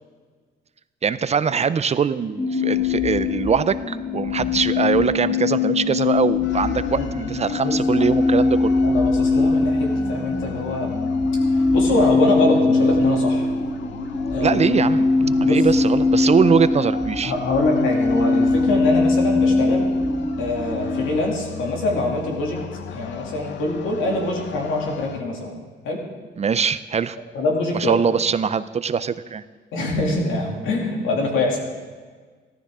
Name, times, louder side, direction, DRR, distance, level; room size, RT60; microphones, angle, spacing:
voice 1, 1.0-8.7 14.4-15.1 15.4-17.3 26.4-27.2 27.8-29.4, right 6 dB, 35° right, 15 dB, 0.5 m, -22 dB
sound 1, 2.4-21.1, left 3 dB, 35° left, 4.4 m, -21 dB
sound 2, 6.4-25.2, left 8 dB, 65° left, 0.8 m, -37 dB
voice 2, 7.0-7.3 7.6-8.0 8.8-10.9 11.7-13.5 14.3-14.6 15.2-15.6 17.2-19.9 20.4-22.6 22.9-25.5 25.8-26.0 27.3-27.9 29.7-31.6, left 2 dB, 85° left, 0 dB, 2.6 m, -24 dB
14.5 x 13.0 x 3.7 m, 1.5 s
cardioid pair, 90°, 20 cm